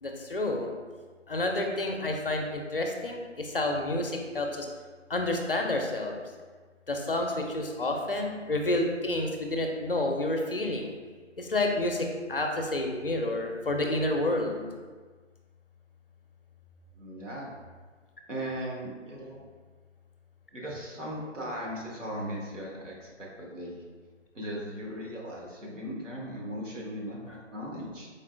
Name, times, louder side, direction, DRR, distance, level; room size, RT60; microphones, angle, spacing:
voice 1, 0.0-0.7 1.3-4.7 5.1-6.2 6.9-10.9 11.4-14.7, left 2 dB, 50° left, 2 dB, 0.4 m, -29 dB
voice 2, 16.9-17.5 18.3-19.4 20.5-23.8 24.3-28.1, equal, 80° right, -4 dB, 1.2 m, -38 dB
4.3 x 2.8 x 2.5 m, 1.5 s
figure-of-eight pair, 160°, 37 cm